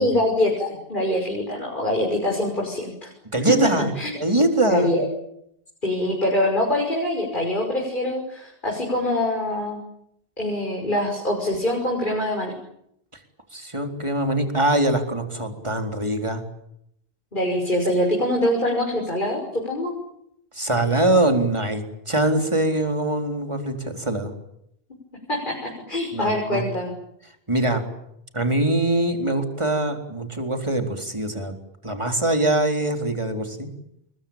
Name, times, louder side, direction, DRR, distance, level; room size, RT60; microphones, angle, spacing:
voice 1, 0.0-3.1 4.0-4.1 4.7-5.0 5.8-9.8 10.4-12.5 17.3-19.9 25.3-26.9, left 1 dB, 50° left, 0 dB, 6.3 m, -24 dB
voice 2, 3.3-4.9 13.5-16.4 20.5-24.3 26.1-26.6 27.5-27.8 28.3-31.5 31.8-33.7, right 1 dB, 30° right, 5 dB, 4.1 m, -23 dB
30.0 x 22.0 x 8.9 m, 0.77 s
omnidirectional pair, 1.1 m